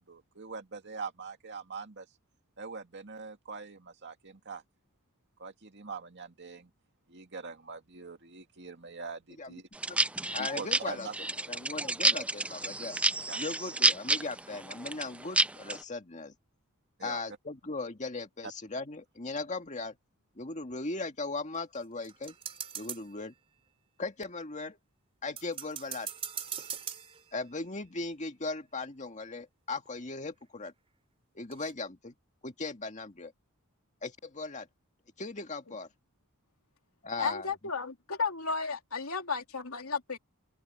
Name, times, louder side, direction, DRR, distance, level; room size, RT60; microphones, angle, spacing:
voice 1, 0.0-2.1 2.6-4.6 5.4-6.7 7.1-9.7 10.4-11.1 13.3-13.4 17.0-17.2 18.4-18.5, right 4 dB, 55° right, 2.3 m, -43 dB
sound 1, 9.7-15.8, right 2 dB, 5° right, 0.4 m, -29 dB
voice 2, 10.3-11.1 11.5-13.0 13.4-16.3 17.0-20.0 20.4-22.4 22.8-23.3 24.0-24.8 25.2-26.1 27.3-30.7 31.4-32.1 32.4-33.3 34.0-34.7 35.2-35.9 37.0-37.5, left 3 dB, 35° left, 2.0 m, -38 dB
sound 2, 21.5-23.3 25.4-27.7 29.9-30.0 30.4-30.5 31.5-31.7, right 7 dB, 25° right, 3.1 m, -41 dB
voice 3, 37.2-40.2, left 4 dB, 75° left, 3.3 m, -33 dB
open air
head